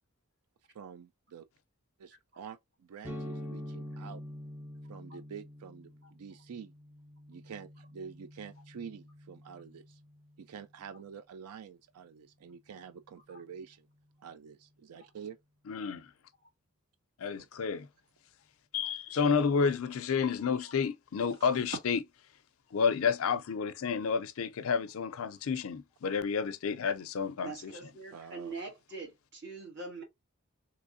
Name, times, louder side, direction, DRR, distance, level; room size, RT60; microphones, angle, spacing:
voice 1, 0.7-1.4 2.0-4.2 4.9-6.7 7.3-10.0 10.4-13.9 14.2-15.4 17.3-17.7 28.1-28.5, right 7 dB, 85° right, 0.4 m, -47 dB
sound 1, 3.0-10.6, equal, 10° right, 0.4 m, -46 dB
voice 2, 15.7-16.1 17.2-17.9 18.7-22.0 22.7-27.7, left 6 dB, 70° left, 0.4 m, -30 dB
voice 3, 27.4-30.0, right 3 dB, 50° right, 1.7 m, -43 dB
3.4 x 3.0 x 2.6 m
head